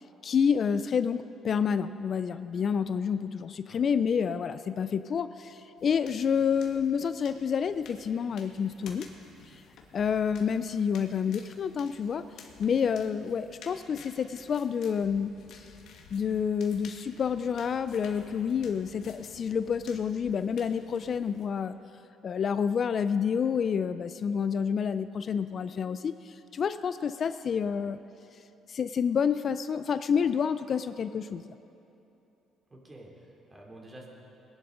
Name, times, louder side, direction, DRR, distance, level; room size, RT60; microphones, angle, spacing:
voice 1, 0.2-9.1 9.9-12.2 12.6-15.7 16.1-21.8 22.2-28.0 28.7-31.5, left 7 dB, 50° left, 12 dB, 0.4 m, -29 dB
sound 1, 5.8-21.5, left 5 dB, 70° left, 1.6 m, -53 dB
voice 2, 32.7-34.1, right 1 dB, 25° right, -2 dB, 3.0 m, -49 dB
20.0 x 11.0 x 3.9 m, 2.9 s
cardioid pair, 90°, 0 cm